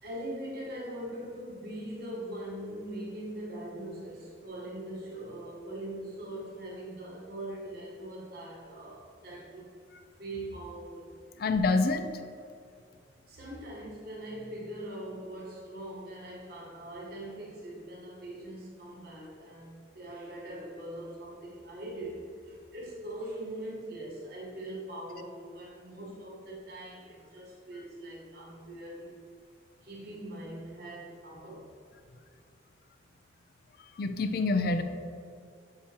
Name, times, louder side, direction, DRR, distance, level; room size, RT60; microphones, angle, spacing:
voice 1, 0.0-9.7 10.2-11.1 13.3-29.3 29.8-31.7, right 1 dB, 55° right, -4 dB, 1.1 m, -41 dB
voice 2, 11.4-12.1 34.0-34.8, left 3 dB, 50° left, 9 dB, 0.4 m, -26 dB
7.2 x 4.8 x 2.8 m, 2.4 s
head